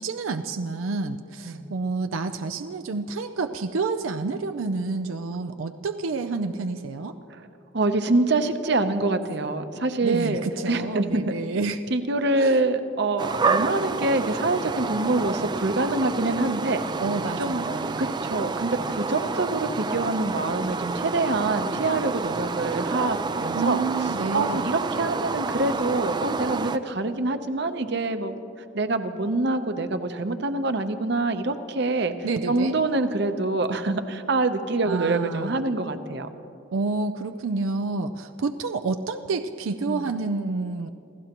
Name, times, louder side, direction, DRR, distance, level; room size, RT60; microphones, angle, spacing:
voice 1, 0.0-7.2 10.0-11.8 12.4-12.6 17.0-18.4 23.5-24.7 32.2-32.7 34.8-35.6 36.7-40.9, right 3 dB, 85° right, 8 dB, 0.5 m, -29 dB
voice 2, 7.7-11.3 11.9-16.8 17.4-23.8 24.3-28.3 28.7-32.1 32.5-36.3 39.9-40.1, right 2 dB, 55° right, 9 dB, 0.8 m, -25 dB
sound 1, 13.2-26.8, right 4 dB, 20° right, 0.3 m, -29 dB
28.0 x 15.5 x 3.0 m, 2.8 s
head